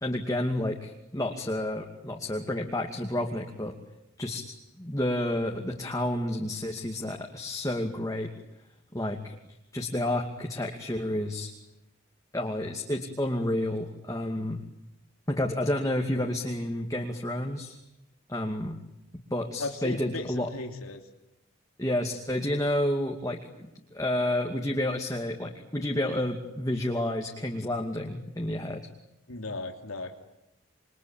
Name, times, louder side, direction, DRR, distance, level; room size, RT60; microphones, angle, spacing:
voice 1, 0.0-3.7 4.2-8.3 8.9-9.3 9.7-11.5 12.3-14.6 15.3-17.8 18.3-18.8 19.3-20.5 21.8-28.9, left 1 dB, 15° left, 2 dB, 2.4 m, -30 dB
voice 2, 19.6-21.0 29.3-30.1, left 2 dB, 80° left, 4 dB, 2.9 m, -36 dB
28.0 x 23.5 x 8.9 m, 0.90 s
head